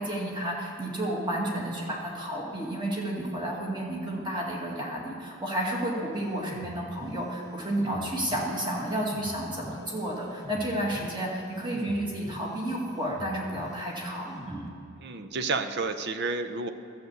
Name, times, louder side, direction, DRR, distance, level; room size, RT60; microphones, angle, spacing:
voice 1, 0.0-14.6, right 1 dB, 20° right, -2 dB, 1.9 m, -31 dB
sound 1, 6.1-14.7, equal, 15° left, 0.9 m, -44 dB
voice 2, 15.0-16.7, right 3 dB, 50° right, 9 dB, 0.6 m, -30 dB
12.0 x 6.8 x 7.9 m, 2.5 s
head